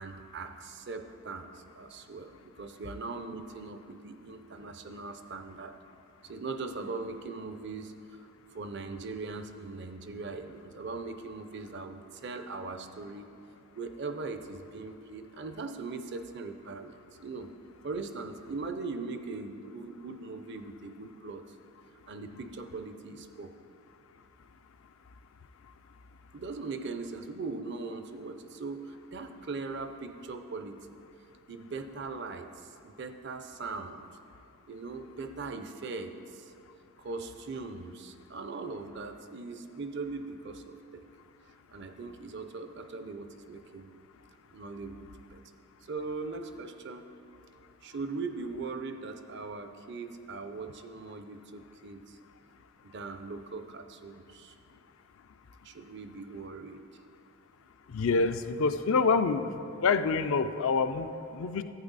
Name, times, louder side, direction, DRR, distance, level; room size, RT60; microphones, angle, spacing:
voice 1, 0.0-5.8 6.2-8.2 8.5-13.3 13.7-17.5 17.8-21.6 22.1-23.5 26.3-31.0 31.5-34.0 34.7-36.5 37.0-41.0 41.7-43.9 44.5-45.4 45.8-47.1 47.8-52.2 52.8-54.6 55.6-56.8, right 3 dB, 50° right, 8 dB, 0.5 m, -40 dB
voice 2, 57.9-59.4 59.8-61.6, left 4 dB, 65° left, 10 dB, 0.4 m, -26 dB
11.5 x 8.6 x 4.0 m, 2.7 s
head